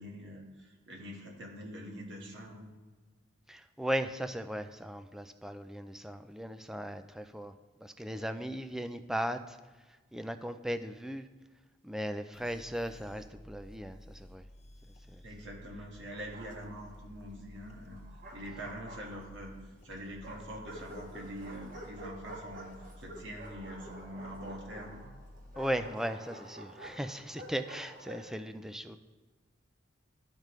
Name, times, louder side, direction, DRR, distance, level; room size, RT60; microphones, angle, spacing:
voice 1, 0.0-2.7 15.2-18.0 18.3-19.6 19.8-22.7 23.0-25.2, equal, 65° right, -1 dB, 1.5 m, -44 dB
voice 2, 3.5-7.5 7.8-9.6 10.1-11.3 11.8-14.4 15.1-15.2 25.6-29.0, equal, ahead, 8 dB, 0.3 m, -37 dB
sound 1, 12.3-25.9, left 1 dB, 35° left, 0.7 m, -53 dB
Bark, 16.1-17.0 17.9-19.5 20.2-28.3, right 1 dB, 45° right, 1.2 m, -49 dB
13.0 x 5.2 x 3.1 m, 1.3 s
head